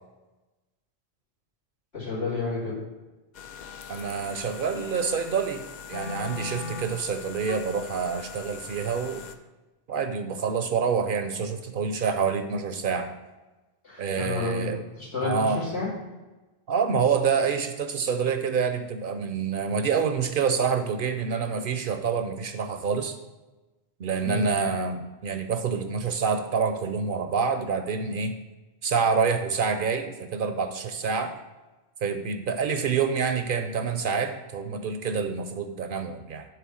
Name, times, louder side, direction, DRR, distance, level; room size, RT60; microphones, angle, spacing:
voice 1, 1.9-2.8 13.8-15.9 24.2-24.4, left 3 dB, 75° left, -8 dB, 3.0 m, -31 dB
sound 1, 3.3-9.3, left 5 dB, 55° left, 0.5 m, -40 dB
voice 2, 3.9-5.6 5.9-9.2 9.9-13.1 14.0-14.8 15.2-15.6 16.7-23.2 24.0-28.3 28.8-31.3 32.0-36.4, right 5 dB, 60° right, 7 dB, 0.7 m, -27 dB
7.5 x 3.3 x 6.2 m, 1.1 s
omnidirectional pair, 1.1 m